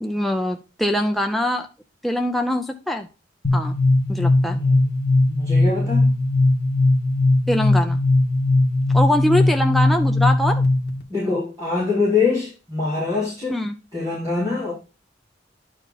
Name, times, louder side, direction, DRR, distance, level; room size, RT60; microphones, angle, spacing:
voice 1, 0.0-1.7 2.0-3.1 3.5-3.8 4.1-4.6 7.5-8.0 8.9-10.6 13.5-13.8, left 1 dB, ahead, 3 dB, 0.5 m, -23 dB
sound 1, 3.4-11.0, left 2 dB, 65° left, 1.7 m, -19 dB
voice 2, 4.5-5.0 5.3-6.1 11.1-13.5 13.9-14.7, left 4 dB, 20° right, -10 dB, 4.7 m, -24 dB
11.0 x 4.6 x 4.1 m, 0.32 s
head